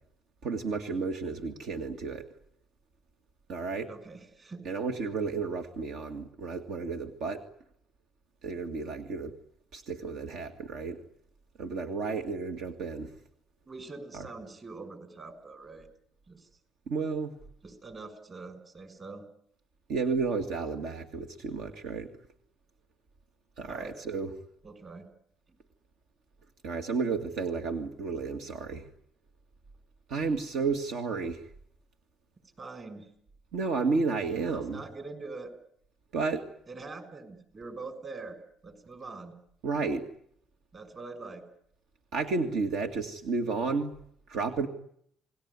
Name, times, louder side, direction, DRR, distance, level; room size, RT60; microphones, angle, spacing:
voice 1, 0.4-2.3 3.5-3.9 4.7-7.4 8.4-9.3 9.7-11.0 11.6-13.1 14.1-14.3 16.9-17.4 19.9-22.1 23.6-24.3 26.6-28.9 30.1-31.5 33.5-34.8 36.1-36.5 39.6-40.1 42.1-43.9 44.3-44.7, right 4 dB, 75° right, 6 dB, 2.2 m, -32 dB
voice 2, 3.9-4.7 13.7-15.9 16.3-16.5 17.6-19.2 23.6-23.9 24.6-25.1 32.6-33.1 34.5-35.5 36.7-38.4 38.6-39.3 40.7-41.4, right 3 dB, 35° right, 11 dB, 6.4 m, -43 dB
29.0 x 20.0 x 9.8 m, 0.70 s
cardioid pair, 100°, 0 cm